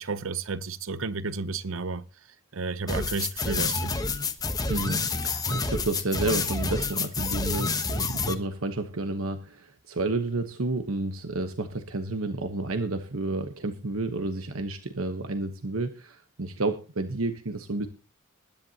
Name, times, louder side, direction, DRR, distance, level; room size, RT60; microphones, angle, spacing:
voice 1, 0.0-2.0 2.5-3.9, right 4 dB, 70° right, 0.8 m, -32 dB
sound 1, 2.9-8.3, left 3 dB, 20° left, 1.1 m, -28 dB
voice 2, 4.6-17.9, right 2 dB, 90° right, 1.1 m, -31 dB
21.0 x 10.5 x 2.9 m
head